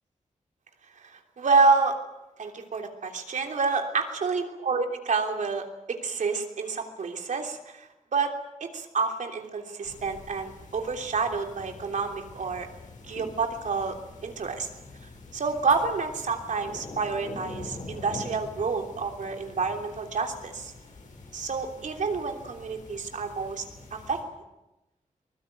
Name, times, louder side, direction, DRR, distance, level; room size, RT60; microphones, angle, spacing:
voice 1, 1.0-2.0 2.4-8.3 8.6-12.7 13.1-14.0 14.2-14.7 15.3-20.7 21.3-23.7 23.9-24.2, right 4 dB, 75° right, 4 dB, 3.1 m, -28 dB
sound 1, 9.8-24.2, left 2 dB, 85° left, 7.5 m, -45 dB
23.0 x 20.5 x 9.2 m, 0.98 s
wide cardioid pair, 135°, 13 cm